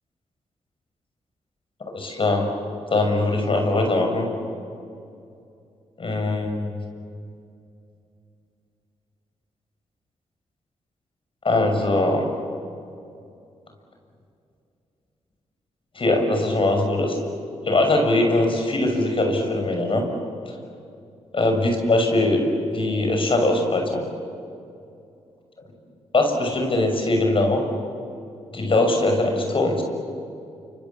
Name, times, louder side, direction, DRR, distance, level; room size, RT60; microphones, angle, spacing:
voice 1, 1.9-2.5 2.9-4.3 6.0-6.7 11.4-12.3 15.9-17.2 17.7-20.1 21.3-22.4 22.7-24.1 26.1-27.6 28.5-29.8, left 2 dB, 50° left, 3 dB, 6.5 m, -21 dB
28.5 x 26.0 x 7.2 m, 2.5 s
cardioid pair, 55°, 12 cm